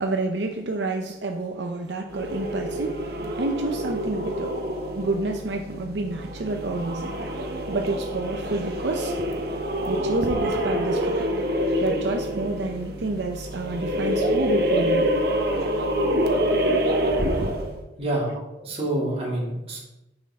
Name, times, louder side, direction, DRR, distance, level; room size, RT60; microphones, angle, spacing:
voice 1, 0.0-4.6 4.9-7.1 7.7-9.2 9.9-11.3 11.8-15.1, right 2 dB, 80° right, 3 dB, 0.7 m, -29 dB
sound 1, 2.1-17.8, equal, 60° right, 1.1 m, -26 dB
voice 2, 18.0-19.8, right 1 dB, 35° right, -4 dB, 2.7 m, -27 dB
9.7 x 6.3 x 3.7 m, 0.96 s
head